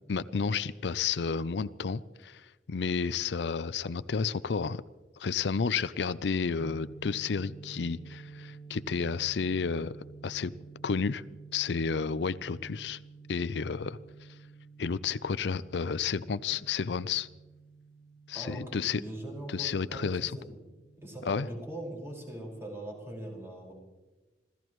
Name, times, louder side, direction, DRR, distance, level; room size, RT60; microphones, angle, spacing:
voice 1, 0.1-4.8 5.2-9.9 10.2-10.5 10.8-11.2 11.5-13.0 13.3-14.0 14.8-17.3 18.3-19.0 19.5-20.3 21.3-21.5, left 5 dB, 80° left, 16 dB, 0.5 m, -31 dB
sound 1, 6.6-22.2, right 4 dB, 35° left, 1.9 m, -51 dB
voice 2, 18.3-20.6 21.0-23.7, right 1 dB, 15° right, -2 dB, 5.2 m, -41 dB
26.5 x 16.0 x 3.1 m, 1.1 s
head